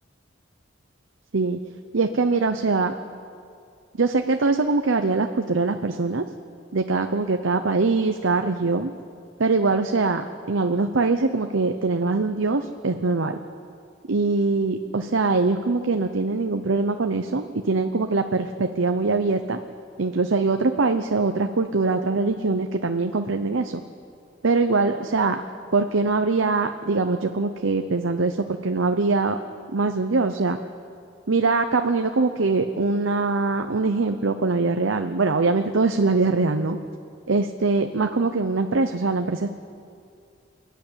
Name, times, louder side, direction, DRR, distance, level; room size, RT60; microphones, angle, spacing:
voice 1, 1.9-2.9 4.0-6.2 6.7-8.9 9.4-13.4 14.1-19.6 20.0-23.8 24.4-25.4 25.7-29.4 29.7-30.6 31.3-36.8 37.3-39.5, right 3 dB, 80° right, 6 dB, 0.8 m, -22 dB
28.5 x 10.5 x 8.7 m, 2.4 s
head